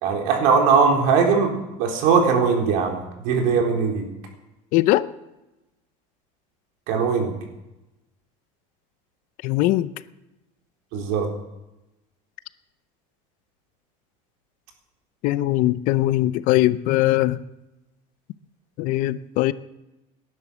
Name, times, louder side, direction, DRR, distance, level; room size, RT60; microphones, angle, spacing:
voice 1, 0.0-1.5 1.8-3.0 3.2-4.0 6.9-7.4 10.9-11.3, right 5 dB, 65° right, 3.9 m, -20 dB
voice 2, 4.7-5.1 9.4-9.9 15.2-17.4 18.8-19.5, left 16 dB, 55° left, 0.6 m, -20 dB
19.0 x 11.0 x 6.3 m
cardioid pair, 165°, 16 cm